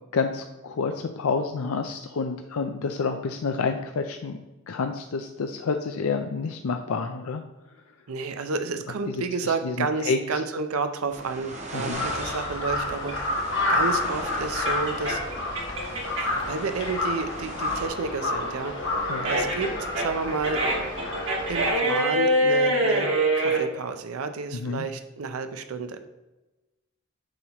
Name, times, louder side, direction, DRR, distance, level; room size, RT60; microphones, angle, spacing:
voice 1, 0.1-4.4 4.7-7.4 9.1-10.4 11.7-12.1 19.1-19.3 24.5-24.9, left 4 dB, 85° left, 6 dB, 0.5 m, -29 dB
voice 2, 8.1-15.2 16.2-19.0 19.2-20.6 21.5-23.1 23.4-26.0, right 4 dB, 90° right, 8 dB, 0.6 m, -31 dB
sound 1, 11.1-17.9, right 1 dB, 30° right, 1.0 m, -40 dB
Crow, 11.9-21.7, left 2 dB, 55° left, 1.6 m, -30 dB
sound 2, 13.0-16.5 16.9-23.6, right 1 dB, 60° right, 2.2 m, -25 dB
7.8 x 2.9 x 5.7 m, 1.1 s
head